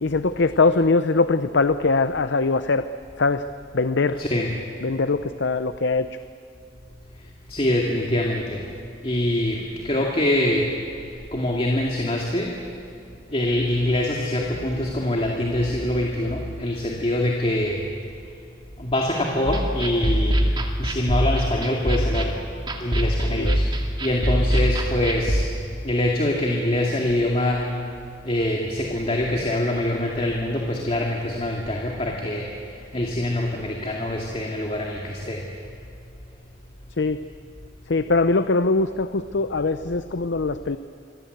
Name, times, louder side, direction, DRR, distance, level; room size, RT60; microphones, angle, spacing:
voice 1, 0.0-2.8 3.2-3.4 3.7-4.2 4.8-6.1 23.3-23.6 37.0-37.2 37.9-40.8, left 3 dB, 65° left, 11 dB, 0.7 m, -22 dB
voice 2, 4.2-4.5 7.5-8.6 9.0-10.7 11.3-12.5 13.3-17.9 18.8-20.5 20.8-22.4 22.8-23.7 24.0-25.5 25.8-27.7 28.3-32.5 32.9-35.4, left 1 dB, 30° left, -1 dB, 2.3 m, -24 dB
sound 1, 19.5-25.4, equal, 25° right, 2.3 m, -23 dB
27.5 x 23.0 x 8.0 m, 2.6 s
head